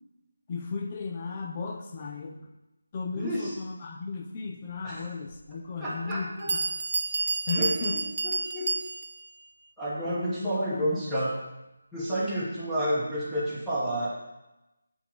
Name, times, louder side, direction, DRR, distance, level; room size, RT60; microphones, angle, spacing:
voice 1, 0.5-2.5 2.9-6.6 7.5-8.0 10.0-11.1, left 4 dB, 25° left, 2 dB, 0.6 m, -35 dB
voice 2, 3.1-3.5 4.8-5.0 5.8-6.6 7.5-8.7 9.8-11.3 11.9-14.1, equal, ahead, -14 dB, 1.3 m, -30 dB
Bell, 5.3-5.4 6.1-6.2 6.5-9.3, right 3 dB, 50° right, 0.4 m, -30 dB
7.8 x 3.7 x 6.0 m, 0.97 s
figure-of-eight pair, 170°, 0 cm